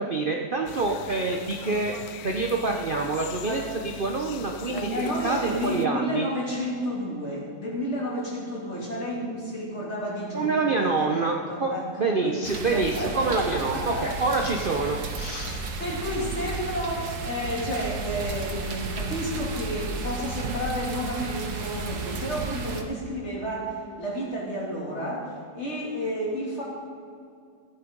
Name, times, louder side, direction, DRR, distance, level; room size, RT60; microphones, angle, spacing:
voice 1, 0.0-1.9 2.2-6.3 10.3-15.6, right 3 dB, 40° right, 1 dB, 0.8 m, -27 dB
sound 1, 0.7-5.9, left 9 dB, 70° left, 1.1 m, -42 dB
voice 2, 4.7-11.9 12.2-12.4 12.7-14.1 15.4-26.6, equal, 40° left, -4 dB, 3.3 m, -31 dB
sound 2, 12.4-22.8, right 4 dB, 70° right, 1.8 m, -33 dB
15.0 x 9.6 x 5.4 m, 2.3 s
omnidirectional pair, 1.8 m